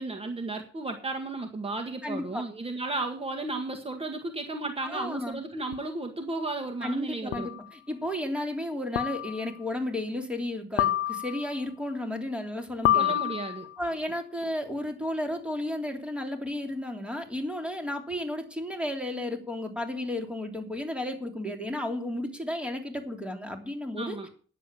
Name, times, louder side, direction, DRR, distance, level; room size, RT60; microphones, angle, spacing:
voice 1, 0.0-7.5 12.9-13.7 24.0-24.3, right 2 dB, 30° right, 5 dB, 1.8 m, -34 dB
voice 2, 2.0-2.4 4.8-5.4 6.8-13.1 13.8-24.2, left 1 dB, 5° right, 4 dB, 3.1 m, -33 dB
sound 1, 5.7-5.8 7.3-7.7 9.0-9.5 10.8-11.6 12.9-13.8, left 12 dB, 90° left, 0.6 m, -27 dB
10.0 x 7.6 x 8.6 m, 0.42 s
cardioid pair, 90°, 20 cm